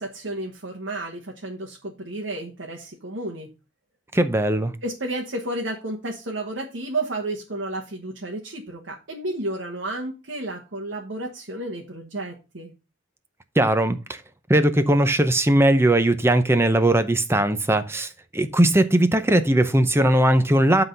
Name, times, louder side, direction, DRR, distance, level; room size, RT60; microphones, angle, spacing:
voice 1, 0.0-3.5 4.8-12.7, right 2 dB, 80° right, 1.4 m, -32 dB
voice 2, 4.1-4.8 13.6-14.2 14.5-20.8, right 1 dB, 15° right, 0.6 m, -19 dB
10.5 x 3.9 x 5.4 m
head